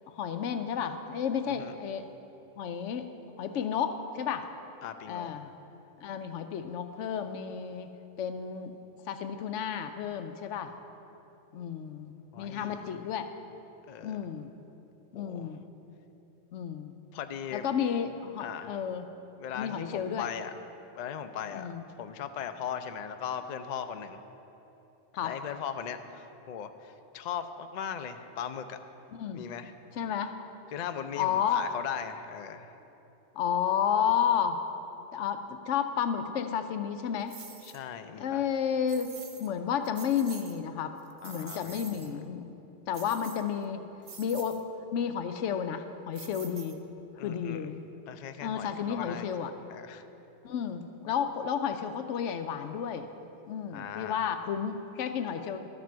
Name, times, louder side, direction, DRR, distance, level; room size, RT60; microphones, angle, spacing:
voice 1, 0.1-2.1 2.6-3.1 3.4-4.5 5.1-5.5 6.0-7.9 8.2-8.7 9.1-10.7 11.5-13.3 14.0-14.5 15.1-15.6 16.5-16.9 17.5-19.1 19.5-20.3 21.5-21.8 25.1-25.3 29.1-29.4 30.0-30.4 31.2-31.6 33.4-34.6 35.1-37.4 38.2-39.1 39.4-40.9 41.2-42.6 42.9-43.9 44.2-44.6 44.9-46.8 47.1-47.8 48.4-49.5 50.4-53.1 53.5-55.6, left 8 dB, 80° left, 8 dB, 0.9 m, -31 dB
voice 2, 4.8-5.3 12.3-13.1 13.9-14.2 15.1-15.5 17.1-17.7 18.4-18.8 19.4-20.5 20.9-21.7 22.0-24.2 25.2-28.8 29.3-29.7 30.7-32.8 37.6-38.4 41.2-42.2 47.2-47.7 48.1-50.1 53.7-54.2, left 8 dB, 60° left, 9 dB, 0.4 m, -39 dB
sound 1, 37.3-37.8 38.9-39.5 39.8-40.6 41.0-42.1 42.9-43.6 44.0-44.6 46.1-47.0, right 5 dB, 40° right, 0.5 m, -47 dB
12.5 x 7.5 x 4.6 m, 3.0 s
omnidirectional pair, 1.3 m